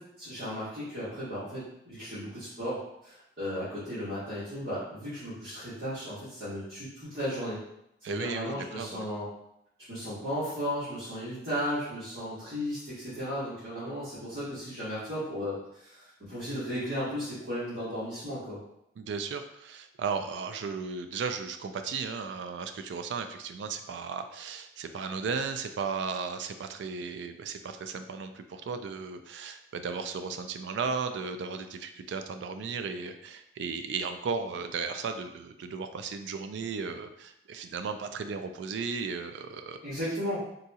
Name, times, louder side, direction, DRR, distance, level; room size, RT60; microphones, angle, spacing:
voice 1, 0.0-7.6 8.1-9.3 9.9-18.6 39.8-40.4, equal, 65° right, -14 dB, 1.5 m, -35 dB
voice 2, 8.0-9.0 19.0-39.8, right 5 dB, 85° right, 8 dB, 0.3 m, -35 dB
3.8 x 2.3 x 2.7 m, 0.79 s
head